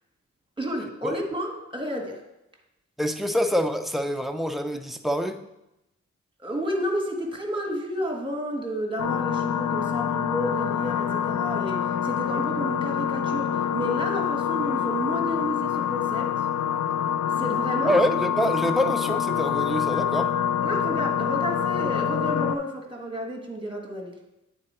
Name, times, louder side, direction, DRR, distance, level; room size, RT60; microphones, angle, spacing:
voice 1, 0.6-2.2 6.4-16.3 17.4-18.0 20.6-24.2, equal, 15° right, 2 dB, 1.4 m, -31 dB
voice 2, 3.0-5.4 17.8-20.3, equal, ahead, 6 dB, 0.6 m, -26 dB
sound 1, 9.0-22.6, left 9 dB, 75° left, 0.5 m, -26 dB
8.7 x 3.9 x 4.3 m, 0.90 s
cardioid pair, 65°, 30 cm